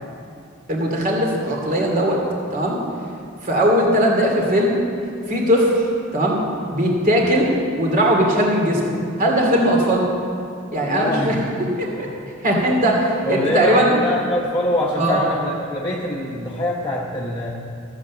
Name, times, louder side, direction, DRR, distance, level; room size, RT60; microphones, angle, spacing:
voice 1, 0.7-2.2 2.5-2.8 3.4-4.8 5.3-5.9 6.1-6.4 6.7-7.5 7.8-8.8 9.2-10.1 10.7-11.4 11.8-12.1 12.4-13.9 15.0-15.2, equal, 40° right, -1 dB, 2.6 m, -19 dB
voice 2, 10.8-11.3 13.2-17.5, left 1 dB, 20° left, -3 dB, 1.0 m, -24 dB
14.5 x 8.1 x 7.2 m, 2.5 s
head